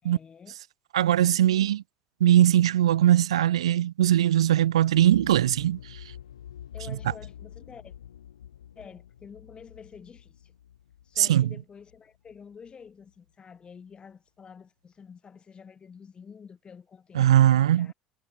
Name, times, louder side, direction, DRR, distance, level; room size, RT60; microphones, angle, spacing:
voice 1, 0.0-0.6 1.4-1.8 6.7-7.9 8.8-10.5 11.0-17.9, left 6 dB, 35° left, 4.1 m, -49 dB
voice 2, 0.9-1.8 2.2-6.0 11.2-11.5 17.1-17.9, right 12 dB, 85° right, 0.5 m, -20 dB
sound 1, 4.9-12.7 13.0-13.1, left 10 dB, 90° left, 2.6 m, -47 dB
hypercardioid pair, 70°, 3 cm